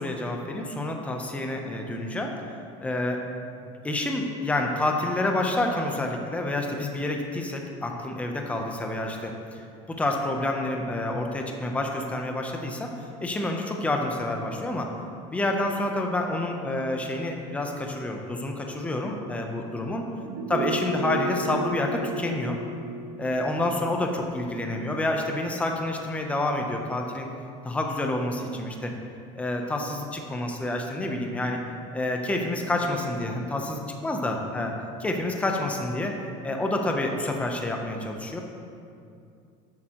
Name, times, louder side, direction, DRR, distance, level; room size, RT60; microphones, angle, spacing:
voice 1, 0.0-2.3 2.8-3.3 3.8-9.6 9.9-12.9 13.2-14.9 15.3-20.0 20.5-22.6 23.2-27.3 27.6-28.9 29.3-31.6 31.9-34.7 35.0-36.2 36.4-38.4, left 2 dB, 10° left, 2 dB, 0.7 m, -28 dB
sound 1, 20.2-25.4 25.7-25.8, right 2 dB, 80° right, 0.7 m, -34 dB
12.5 x 7.7 x 3.0 m, 2.4 s
cardioid pair, 150°, 16 cm